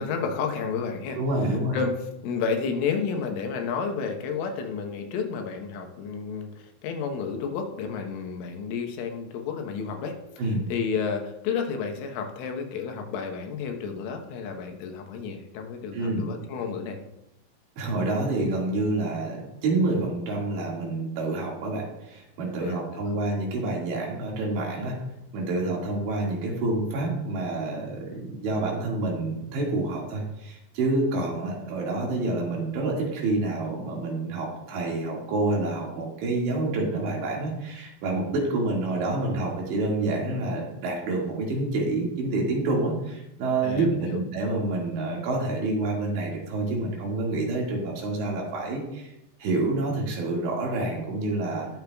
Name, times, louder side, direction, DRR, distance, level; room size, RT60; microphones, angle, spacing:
voice 1, 0.0-1.2 1.7-1.9 2.2-10.2 10.7-17.0 22.6-23.2 43.6-44.2, left 5 dB, 85° left, 3 dB, 3.7 m, -31 dB
voice 2, 1.2-1.8 10.4-10.6 15.9-16.2 17.8-25.0 25.3-49.1 49.4-51.7, right 2 dB, 70° right, -2 dB, 4.2 m, -28 dB
20.0 x 6.9 x 2.4 m, 0.87 s
omnidirectional pair, 5.5 m